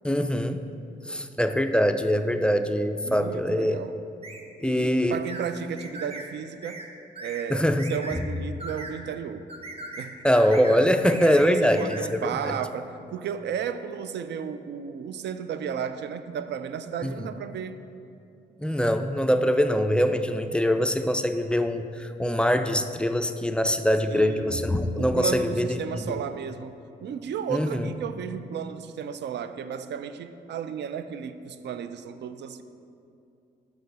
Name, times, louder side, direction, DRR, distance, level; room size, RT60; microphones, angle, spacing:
voice 1, 0.0-0.6 1.1-3.8 4.6-5.2 7.5-7.9 10.2-12.5 17.0-17.1 18.6-26.2 27.5-27.9, equal, 5° left, 8 dB, 0.3 m, -23 dB
voice 2, 3.0-3.9 4.6-6.9 7.2-9.5 9.9-10.2 11.5-17.8 24.1-24.7 24.9-32.6, right 7 dB, 65° right, 11 dB, 0.4 m, -34 dB
sound 1, 4.2-4.4 5.3-5.5 5.8-6.3 6.6-6.9 7.2-7.5 7.8-8.2 8.6-8.9 9.5-10.1 10.4-10.8 11.1-12.0, right 2 dB, 30° right, 0.8 m, -39 dB
6.5 x 5.7 x 4.1 m, 2.6 s
cardioid pair, 60°, 19 cm